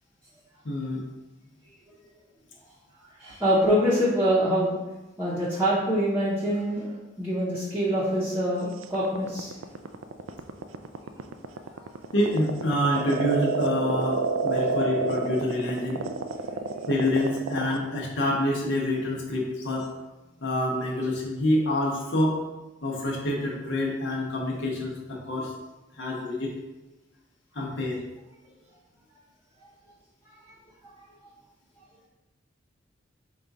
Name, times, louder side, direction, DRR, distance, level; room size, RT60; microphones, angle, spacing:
voice 1, 0.6-1.0 12.1-16.0 16.9-19.9 20.4-22.4 22.8-25.5 25.9-26.6 27.5-28.0, left 1 dB, 65° left, -2 dB, 0.7 m, -27 dB
voice 2, 3.2-4.8 5.2-6.9 7.2-9.5 11.8-11.9 30.5-30.6, equal, 10° right, -10 dB, 0.7 m, -25 dB
sound 1, 8.8-17.8, right 4 dB, 85° right, 0.3 m, -29 dB
5.0 x 2.3 x 3.9 m, 1.1 s
head